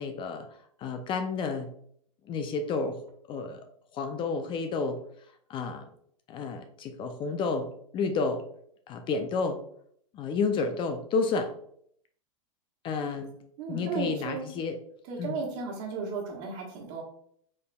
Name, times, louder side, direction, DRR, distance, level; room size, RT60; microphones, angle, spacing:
voice 1, 0.0-1.7 2.2-3.0 3.3-3.6 3.9-5.0 5.5-5.9 6.3-8.4 8.9-9.6 10.1-11.5 12.8-13.4 13.7-14.8 15.2-15.4, left 4 dB, 30° left, 6 dB, 0.4 m, -31 dB
voice 2, 13.6-14.5 15.1-17.0, right 4 dB, 50° right, 0 dB, 1.3 m, -34 dB
4.3 x 3.4 x 2.2 m, 0.65 s
hypercardioid pair, 115°, 17 cm